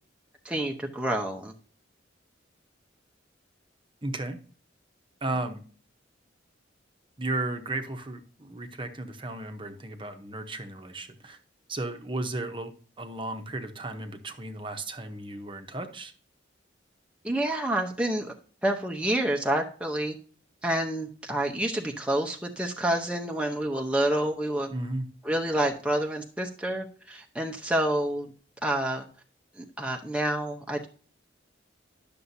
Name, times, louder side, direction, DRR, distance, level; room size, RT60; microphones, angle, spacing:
voice 1, 0.4-1.5 17.2-18.3 18.6-20.2 20.6-24.7 25.2-28.3 28.6-29.0 29.6-30.9, right 1 dB, 5° right, 1 dB, 0.8 m, -28 dB
voice 2, 4.0-4.4 5.2-5.6 7.2-11.4 11.7-12.7 13.0-16.1 24.7-25.1, right 2 dB, 25° right, 7 dB, 1.0 m, -34 dB
11.0 x 6.9 x 2.7 m, 0.41 s
head